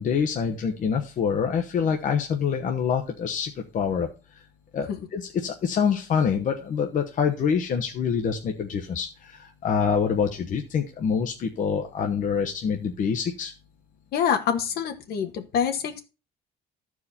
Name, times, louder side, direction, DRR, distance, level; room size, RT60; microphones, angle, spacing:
voice 1, 0.0-4.1 4.7-13.5, left 6 dB, 50° left, 3 dB, 1.0 m, -26 dB
voice 2, 14.1-16.0, left 8 dB, 70° left, 7 dB, 1.6 m, -26 dB
13.5 x 4.8 x 4.3 m, 0.31 s
cardioid pair, 110°, 17 cm